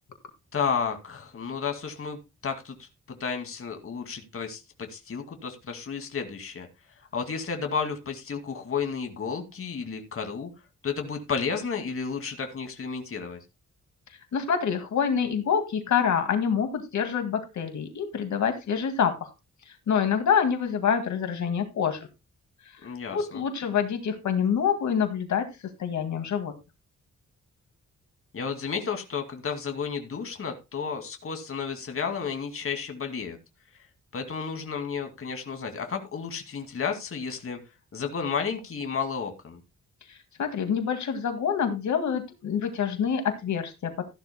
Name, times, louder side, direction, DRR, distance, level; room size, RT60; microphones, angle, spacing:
voice 1, 0.5-6.7 7.0-10.5 10.8-13.4 22.8-23.4 28.3-33.4 34.1-37.6 37.9-39.6, left 6 dB, 45° left, 5 dB, 2.3 m, -32 dB
voice 2, 14.3-19.3 19.9-22.0 23.1-25.5 25.8-26.5 40.1-43.9, left 7 dB, 70° left, 6 dB, 2.1 m, -26 dB
15.0 x 11.5 x 2.2 m, 0.26 s
wide cardioid pair, 135°, 30 cm